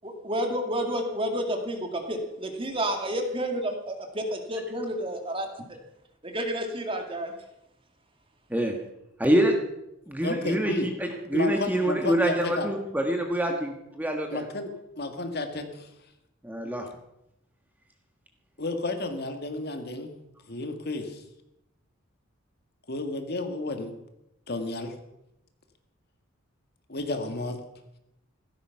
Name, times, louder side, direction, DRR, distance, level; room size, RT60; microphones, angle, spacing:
voice 1, 0.2-5.5 6.2-7.3, right 1 dB, 25° right, 4 dB, 2.3 m, -30 dB
voice 2, 9.2-9.5 10.1-14.4 16.4-16.9, right 1 dB, 10° right, 3 dB, 1.5 m, -26 dB
voice 3, 10.2-10.9 11.3-12.7 13.5-13.6 14.3-14.7 15.0-15.9 18.6-20.1 20.5-21.2 22.9-23.9 24.5-24.9 26.9-27.6, left 2 dB, 50° left, 6 dB, 1.8 m, -31 dB
15.5 x 13.0 x 5.9 m, 0.85 s
head